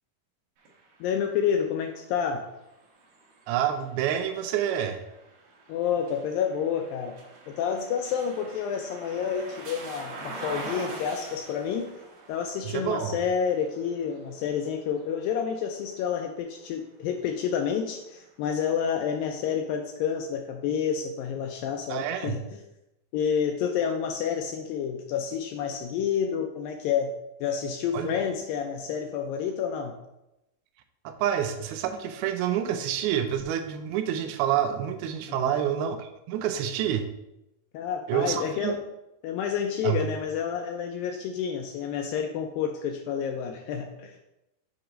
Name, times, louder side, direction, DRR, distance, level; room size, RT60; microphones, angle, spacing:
sound 1, 0.6-16.5 17.1-18.3, right 3 dB, 60° right, 2.2 m, -45 dB
voice 1, 1.0-2.4 5.7-7.2 7.5-11.9 12.3-22.6 23.1-27.1 27.4-29.9 35.3-35.5 37.7-38.8 39.2-44.2, left 7 dB, 80° left, 4 dB, 2.1 m, -29 dB
voice 2, 3.5-5.0 12.7-13.2 21.9-22.4 27.9-28.2 31.0-37.1 38.1-38.8 39.8-40.0, right 9 dB, 85° right, 7 dB, 2.4 m, -28 dB
7.8 x 2.9 x 5.0 m, 0.91 s
omnidirectional pair, 4.4 m